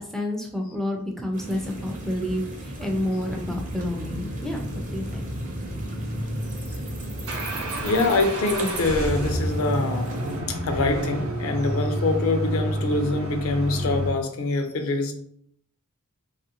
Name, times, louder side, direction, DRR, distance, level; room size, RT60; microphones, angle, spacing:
voice 1, 0.0-4.7 4.9-5.2 6.2-6.3, left 1 dB, ahead, 1 dB, 0.3 m, -29 dB
sound 1, 1.3-10.4, right 1 dB, 35° right, 0.6 m, -34 dB
sound 2, 6.3-14.1, right 1 dB, 80° right, 0.7 m, -29 dB
voice 2, 7.8-10.2 10.5-15.1, left 2 dB, 70° left, 6 dB, 0.5 m, -24 dB
2.9 x 2.4 x 2.8 m, 0.67 s
head